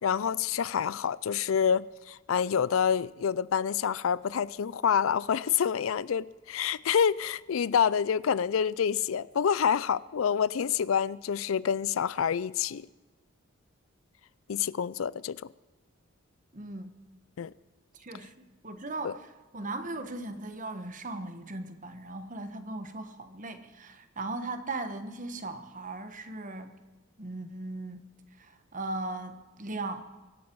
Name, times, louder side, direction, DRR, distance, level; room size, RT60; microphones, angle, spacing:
voice 1, 0.0-12.9 14.5-15.4 17.4-17.5 19.0-19.1, left 7 dB, 80° left, 0.4 m, -27 dB
voice 2, 16.5-17.0 17.9-26.7 27.2-28.1 28.4-30.0, right 2 dB, 40° right, 1.3 m, -38 dB
25.0 x 11.5 x 4.7 m
head